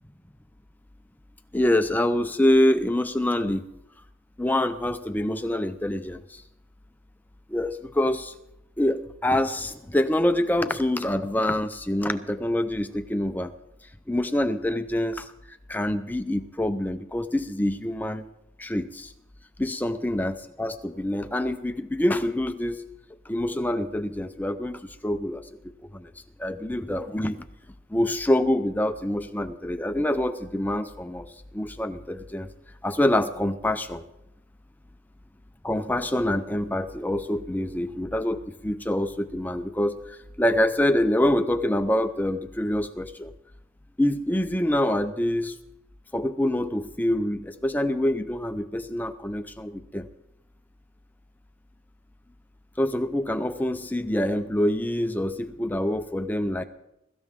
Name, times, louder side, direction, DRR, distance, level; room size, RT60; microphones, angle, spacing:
voice 1, 1.5-3.7 4.4-6.4 7.5-8.3 8.8-13.5 14.1-15.3 15.7-18.3 18.6-19.1 19.6-22.8 23.3-25.5 25.9-26.1 26.4-27.4 27.9-32.5 32.8-34.0 35.6-43.3 44.0-45.5 46.1-50.1 52.8-56.6, left 1 dB, 10° left, 9 dB, 0.5 m, -26 dB
22.5 x 13.5 x 3.6 m, 0.87 s
head